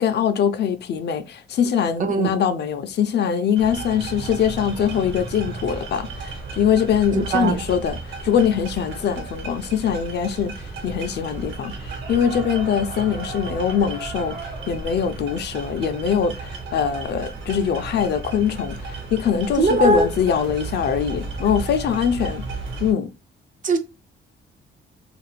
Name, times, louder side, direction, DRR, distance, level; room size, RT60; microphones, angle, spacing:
voice 1, 0.0-22.4 22.8-23.1, left 8 dB, 55° left, 0.4 m, -23 dB
voice 2, 2.0-2.3 7.3-7.6 19.6-20.1 23.6-23.8, right 3 dB, 40° right, 0.5 m, -19 dB
sound 1, 3.6-22.9, right 3 dB, 65° right, 1.0 m, -34 dB
2.6 x 2.4 x 3.2 m
cardioid pair, 140°, 20 cm